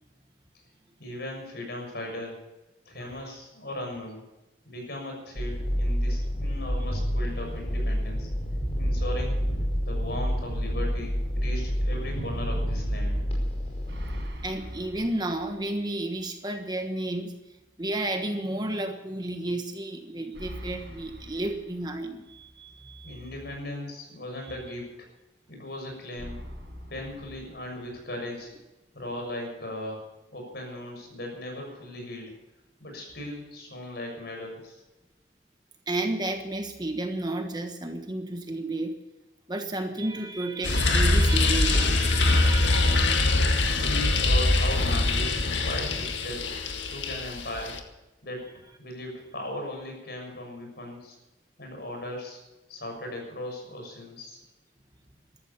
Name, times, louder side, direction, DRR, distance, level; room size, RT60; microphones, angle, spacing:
voice 1, 1.0-2.4 2.8-4.2 4.6-8.3 8.8-9.4 9.8-13.3 23.0-25.1 25.5-26.4 26.9-28.5 28.9-30.0 30.3-32.4 32.8-34.8 43.7-46.5 46.8-47.8 48.2-48.5 48.8-51.2 51.6-52.4 52.7-54.4, left 1 dB, 55° left, 2 dB, 6.7 m, -37 dB
voice 2, 3.0-3.3 14.4-17.3 17.8-23.3 24.4-24.6 35.9-38.9 39.5-43.3, right 2 dB, 20° right, 5 dB, 1.3 m, -32 dB
sound 1, 5.4-14.2, equal, 30° left, 5.3 m, -28 dB
sound 2, 13.9-15.9 16.2-16.3 20.3-22.3 26.2-28.1, equal, 60° right, 6.6 m, -43 dB
sound 3, 40.6-47.8, left 2 dB, 75° left, 1.8 m, -23 dB
14.5 x 13.5 x 7.1 m, 1.0 s
head